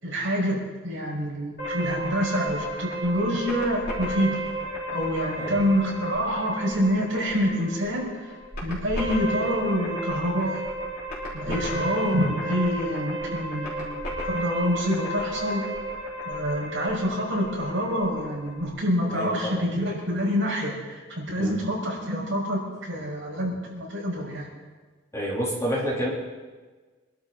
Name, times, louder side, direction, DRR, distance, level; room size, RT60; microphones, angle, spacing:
voice 1, 0.0-4.5 4.9-8.1 8.6-10.6 11.3-15.6 16.2-24.5, equal, 65° right, -4 dB, 6.1 m, -27 dB
sound 1, 1.6-18.7, right 1 dB, 50° left, 5.3 m, -33 dB
voice 2, 19.1-19.6 21.4-21.6 25.1-26.1, equal, 15° left, -5 dB, 3.7 m, -29 dB
25.5 x 12.5 x 4.2 m, 1.4 s
head